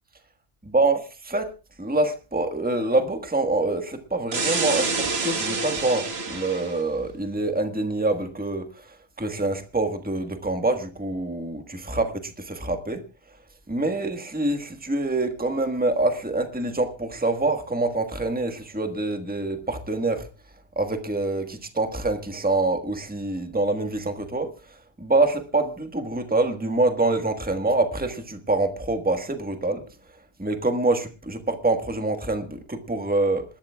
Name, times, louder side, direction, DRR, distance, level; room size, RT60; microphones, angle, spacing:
voice 1, 1.8-12.1 12.4-13.0 13.7-20.3 20.7-24.5 25.0-29.8 30.4-33.4, right 2 dB, 10° right, 6 dB, 1.4 m, -25 dB
sound 1, 4.3-6.8, right 3 dB, 70° right, 1.8 m, -27 dB
27.5 x 12.5 x 2.3 m, 0.31 s
omnidirectional pair, 1.1 m